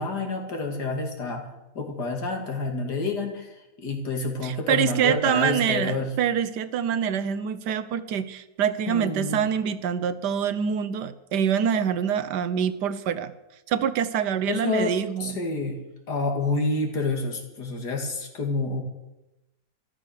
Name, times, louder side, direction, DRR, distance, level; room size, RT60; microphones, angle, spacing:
voice 1, 0.0-1.5 1.7-3.5 3.8-6.1 8.9-9.5 14.5-14.9 15.2-15.8 16.1-18.8, left 3 dB, 80° left, 2 dB, 2.9 m, -28 dB
voice 2, 4.4-13.3 13.7-15.4, right 8 dB, 85° right, 13 dB, 1.5 m, -25 dB
13.5 x 12.5 x 6.5 m, 0.97 s
omnidirectional pair, 1.7 m